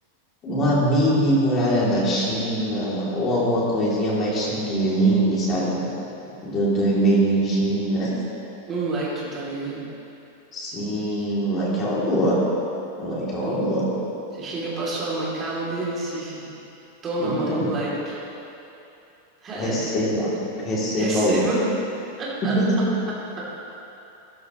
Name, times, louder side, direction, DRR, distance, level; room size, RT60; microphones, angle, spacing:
voice 1, 0.4-5.9 6.4-8.1 10.5-12.4 13.0-13.8 17.2-17.7 19.5-20.3 20.6-21.5 22.4-22.8, right 1 dB, 25° left, -7 dB, 2.8 m, -22 dB
voice 2, 8.7-9.8 13.4-13.7 14.3-16.4 17.0-18.2 19.4-20.0 21.0-21.6 22.2-22.5 23.4-23.6, right 2 dB, 20° right, -7 dB, 2.9 m, -29 dB
13.0 x 13.0 x 3.1 m, 2.9 s
supercardioid pair, 165°, 0 cm